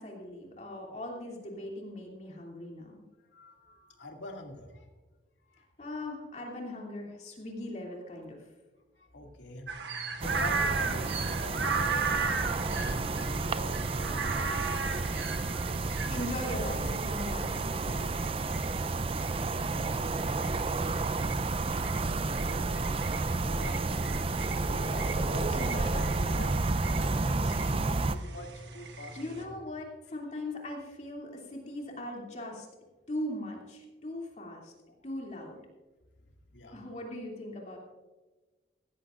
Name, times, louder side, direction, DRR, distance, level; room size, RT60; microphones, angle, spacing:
voice 1, 0.0-3.0 5.8-8.4 15.8-18.2 24.9-25.9 29.2-32.7 33.1-34.7 35.0-35.6 36.7-37.8, left 1 dB, 40° left, -1 dB, 2.7 m, -40 dB
voice 2, 3.3-4.9 5.5-5.6 9.0-9.7 10.2-12.0 12.4-15.1 20.3-20.6 21.6-22.9 23.4-23.9 24.6-27.5 28.1-29.6 34.9-35.0 36.5-36.8, left 1 dB, 85° left, 2 dB, 2.3 m, -46 dB
sound 1, 9.7-29.4, right 4 dB, 70° right, 1.3 m, -37 dB
sound 2, 10.2-28.2, right 3 dB, 30° right, 0.5 m, -31 dB
17.0 x 15.0 x 2.5 m, 1.2 s
head